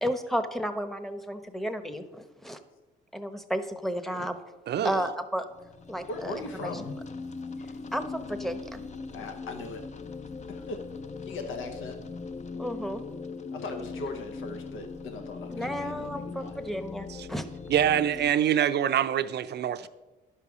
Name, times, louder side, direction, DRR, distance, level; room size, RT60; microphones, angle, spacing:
voice 1, 0.0-2.6 3.1-4.4 4.8-5.5 5.9-6.3 7.9-8.8 12.6-13.0 15.5-17.5, equal, ahead, 0.9 m, -32 dB
voice 2, 4.7-5.0 17.2-17.3 17.7-19.9, right 10 dB, 60° right, 0.6 m, -25 dB
sound 1, 5.5-18.3, left 4 dB, 35° left, 0.7 m, -40 dB
voice 3, 6.1-6.9 9.1-9.8 10.5-10.9 11.2-12.0 13.5-16.6, left 3 dB, 80° left, 1.0 m, -38 dB
11.0 x 5.6 x 6.1 m
cardioid pair, 90°, 20 cm